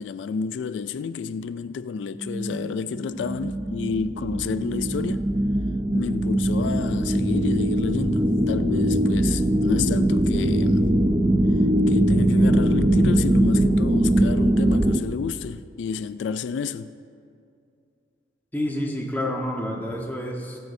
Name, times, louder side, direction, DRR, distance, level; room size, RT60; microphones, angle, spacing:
voice 1, 0.0-5.2 5.9-10.9 11.9-16.9, left 5 dB, 85° left, 0.3 m, -30 dB
sound 1, 2.2-15.0, right 1 dB, 20° right, 0.4 m, -21 dB
voice 2, 18.5-20.6, left 1 dB, 10° left, 1.2 m, -28 dB
22.0 x 9.4 x 2.7 m
head